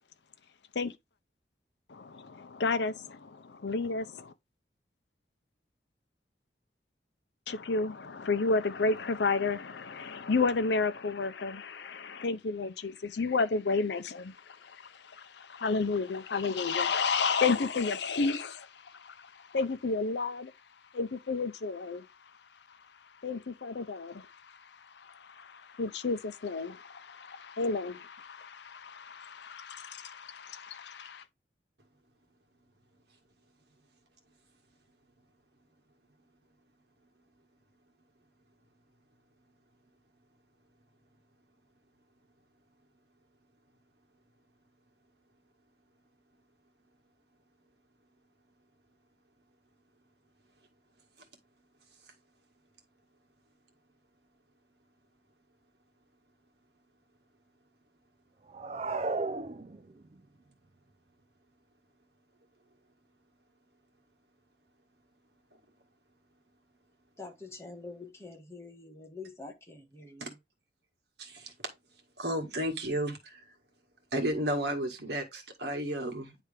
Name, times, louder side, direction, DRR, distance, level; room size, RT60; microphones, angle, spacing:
voice 1, 1.9-4.3 7.5-20.5 20.9-22.0 23.2-24.4 25.0-31.2, left 4 dB, 75° left, 0.6 m, -32 dB
sound 1, 58.5-60.1, right 3 dB, 35° right, 0.4 m, -34 dB
voice 2, 67.2-70.3, left 3 dB, 15° left, 1.2 m, -46 dB
voice 3, 71.2-71.5 72.2-73.4 74.1-76.4, right 1 dB, 70° right, 1.7 m, -33 dB
9.9 x 3.4 x 3.3 m
head